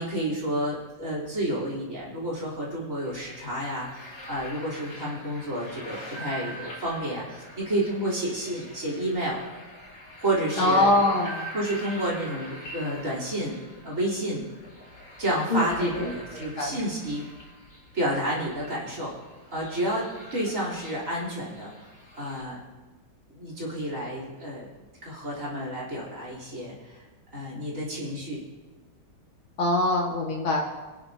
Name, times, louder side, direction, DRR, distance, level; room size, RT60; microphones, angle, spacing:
voice 1, 0.0-9.4 10.2-10.9 11.5-13.6 13.8-14.4 15.2-17.2 17.9-19.2 19.5-21.9 22.2-22.6 23.3-24.7 25.0-27.0 27.3-28.4, right 1 dB, 35° right, -5 dB, 4.0 m, -30 dB
sound 1, 3.0-22.4, equal, 40° left, 3.6 m, -44 dB
voice 2, 10.6-11.5 15.5-16.8 29.6-30.6, left 2 dB, 70° left, -1 dB, 2.6 m, -24 dB
25.5 x 11.0 x 2.8 m, 1.3 s
omnidirectional pair, 2.3 m